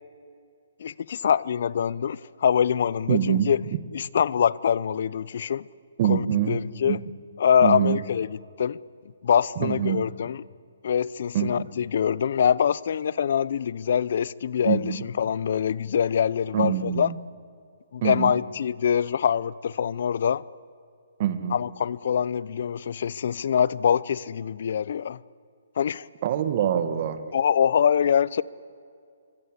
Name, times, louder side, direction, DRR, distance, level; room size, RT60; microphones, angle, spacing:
voice 1, 0.8-3.6 3.9-5.7 6.1-7.0 7.4-8.3 8.6-8.8 9.2-10.4 10.8-17.1 17.9-20.4 21.5-25.2 25.8-26.1 27.3-28.4, left 8 dB, 55° left, 21 dB, 0.7 m, -24 dB
voice 2, 3.1-3.8 6.0-7.0 7.6-8.0 9.6-10.0 11.3-11.7 14.7-15.0 16.5-17.2 18.0-18.4 21.2-21.6 26.2-27.3, right 10 dB, 40° right, 10 dB, 2.0 m, -25 dB
26.0 x 24.5 x 8.2 m, 2.3 s
hypercardioid pair, 160°, 0 cm